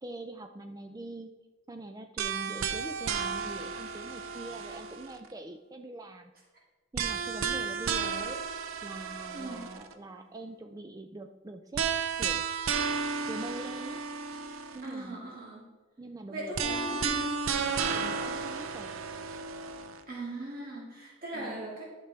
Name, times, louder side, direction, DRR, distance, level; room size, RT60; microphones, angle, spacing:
voice 1, 0.0-1.3 1.7-6.3 6.9-8.5 8.8-11.9 12.2-12.4 13.3-14.0 14.7-15.4 16.0-17.3 17.7-18.9 21.3-21.7, right 2 dB, 15° right, 6 dB, 0.3 m, -44 dB
sound 1, 2.2-5.3 6.9-9.9 11.7-14.9 16.5-20.0, right 6 dB, 75° right, 0.6 m, -33 dB
voice 2, 9.3-9.6 14.8-15.6 16.3-17.3 20.1-21.9, right 1 dB, 45° right, -4 dB, 2.4 m, -39 dB
11.0 x 5.9 x 3.4 m, 1.2 s
head